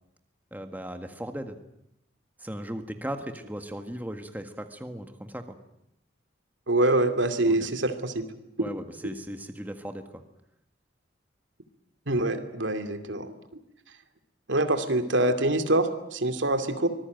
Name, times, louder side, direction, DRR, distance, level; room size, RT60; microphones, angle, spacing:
voice 1, 0.5-1.6 2.4-5.5 7.5-7.7 8.6-10.2, equal, 10° right, 6 dB, 1.7 m, -37 dB
voice 2, 6.7-8.3 12.1-13.3 14.5-16.9, right 2 dB, 80° right, 7 dB, 2.4 m, -25 dB
25.0 x 20.5 x 9.2 m, 0.82 s
head